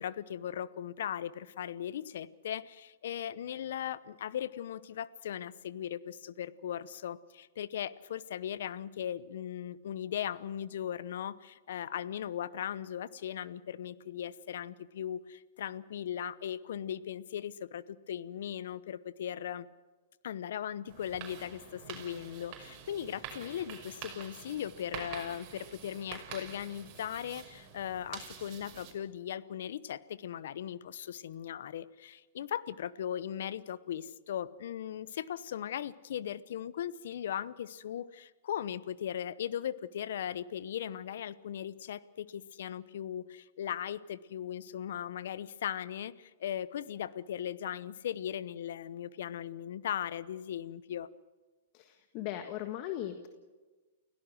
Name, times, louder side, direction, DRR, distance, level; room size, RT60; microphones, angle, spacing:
voice 1, 0.0-19.7 20.2-51.1, left 10 dB, 70° left, 18 dB, 0.8 m, -38 dB
sound 1, 20.9-28.9, right 8 dB, 40° right, 5.7 m, -47 dB
voice 2, 51.7-53.3, left 12 dB, 45° left, 7 dB, 1.6 m, -38 dB
29.5 x 17.0 x 6.4 m, 1.3 s
hypercardioid pair, 120°, 0 cm